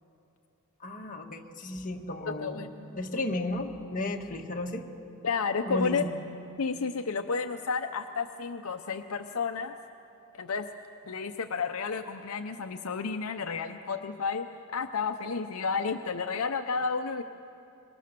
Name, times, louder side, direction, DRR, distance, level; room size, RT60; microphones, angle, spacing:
voice 1, 0.8-4.9 5.7-6.2, left 2 dB, 40° left, 2 dB, 1.7 m, -34 dB
voice 2, 5.2-6.0 6.6-9.7 10.3-10.7 11.1-17.2, left 5 dB, 70° left, 7 dB, 0.7 m, -31 dB
25.5 x 23.0 x 6.8 m, 2.8 s
head